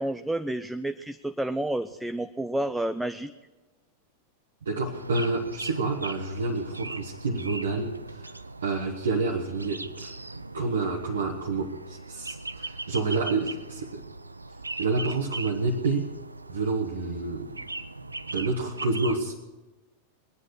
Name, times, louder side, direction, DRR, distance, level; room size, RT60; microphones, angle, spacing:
voice 1, 0.0-3.3, right 1 dB, 5° right, 10 dB, 0.4 m, -30 dB
voice 2, 4.6-8.3 8.6-10.1 10.5-14.0 14.8-16.1 16.5-17.6 18.3-19.3, right 3 dB, 65° right, 0 dB, 1.3 m, -28 dB
sound 1, 4.9-19.2, right 2 dB, 80° right, 0.4 m, -40 dB
21.5 x 9.8 x 6.4 m, 1.2 s
figure-of-eight pair, 90°, 0 cm